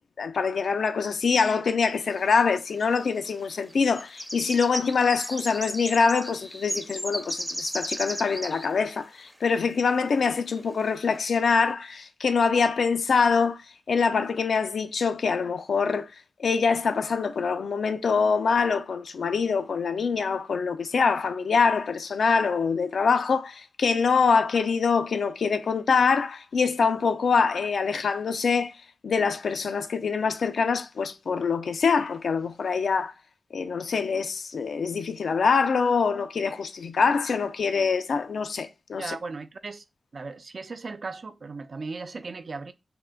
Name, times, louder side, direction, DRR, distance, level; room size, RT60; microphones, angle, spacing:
voice 1, 0.2-16.1 16.4-28.7 29.0-33.1 33.5-39.2, left 5 dB, 85° left, 0.3 m, -24 dB
sound 1, 2.3-2.4 3.2-3.4 3.7-8.7 8.9-9.0 9.5-9.6 10.3-10.4 10.9-11.1, equal, ahead, 0.4 m, -35 dB
voice 2, 39.0-39.8 40.1-42.7, right 4 dB, 65° right, 0.3 m, -37 dB
3.6 x 2.1 x 2.2 m
cardioid pair, 50°, 0 cm